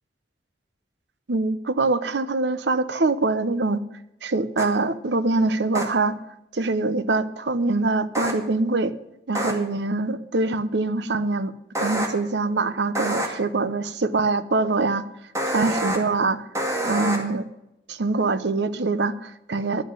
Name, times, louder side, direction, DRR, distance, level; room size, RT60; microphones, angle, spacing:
voice 1, 1.3-3.9 4.2-6.2 6.5-8.9 9.3-11.5 11.8-15.1 15.5-16.5 16.8-17.5 17.9-19.8, right 3 dB, 75° right, 14 dB, 0.8 m, -24 dB
sound 1, 4.6-4.7 5.7-5.8 8.1-8.3 9.3-9.5 11.7-12.1 12.9-13.3 15.3-16.0 16.5-17.2, right 1 dB, 15° right, 2.0 m, -26 dB
11.5 x 7.4 x 9.5 m, 0.88 s
head